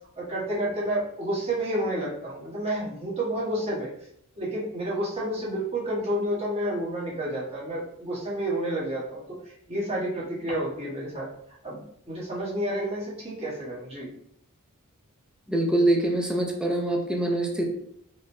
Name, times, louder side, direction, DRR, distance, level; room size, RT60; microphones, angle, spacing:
voice 1, 0.1-3.9 4.4-11.3 11.6-11.8 12.1-14.1, right 1 dB, 25° right, -7 dB, 1.4 m, -30 dB
voice 2, 15.5-17.7, right 1 dB, 5° right, 0 dB, 0.6 m, -24 dB
4.9 x 2.8 x 2.3 m, 0.71 s
head